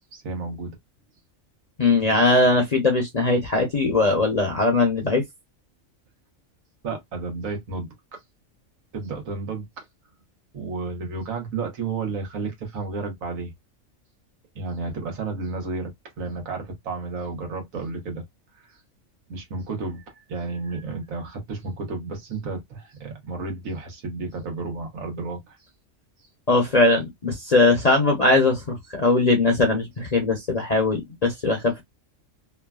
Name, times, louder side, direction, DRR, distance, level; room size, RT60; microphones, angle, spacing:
voice 1, 0.1-0.8 6.8-8.2 8.9-9.8 10.5-13.5 14.5-18.2 18.5-18.8 19.3-25.7, right 3 dB, 90° right, 1.3 m, -32 dB
voice 2, 1.8-5.2 26.5-31.8, left 3 dB, 40° left, 0.6 m, -20 dB
3.1 x 2.3 x 2.2 m
omnidirectional pair, 1.4 m